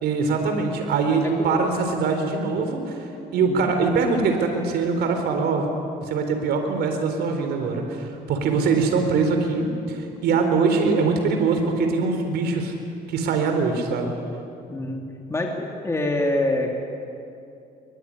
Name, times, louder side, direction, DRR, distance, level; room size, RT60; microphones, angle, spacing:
voice 1, 0.0-3.1 3.3-5.7 6.0-12.7 13.1-14.1, right 4 dB, 70° right, 5 dB, 4.0 m, -23 dB
voice 2, 14.7-15.0 15.3-16.7, left 1 dB, 15° left, 0 dB, 2.7 m, -25 dB
23.0 x 22.5 x 9.9 m, 2.7 s
cardioid pair, 110°, 17 cm